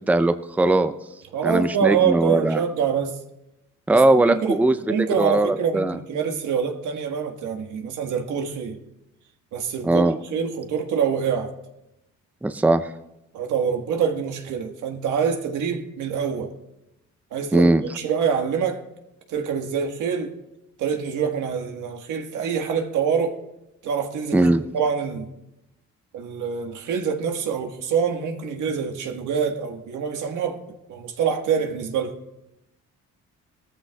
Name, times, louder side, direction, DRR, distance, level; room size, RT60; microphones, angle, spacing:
voice 1, 0.1-0.9 1.4-2.6 3.9-6.0 9.8-10.2 12.4-12.9 17.5-17.8 24.3-24.6, right 2 dB, 5° right, 0.6 m, -19 dB
voice 2, 1.3-3.2 3.9-4.6 4.9-8.8 9.5-11.5 13.3-16.5 17.3-18.8 19.3-20.3 20.8-23.4 23.8-24.5 24.7-25.3 26.1-30.6 30.9-32.1, right 7 dB, 80° right, 1.6 m, -25 dB
19.0 x 14.0 x 2.3 m
cardioid pair, 90°, 30 cm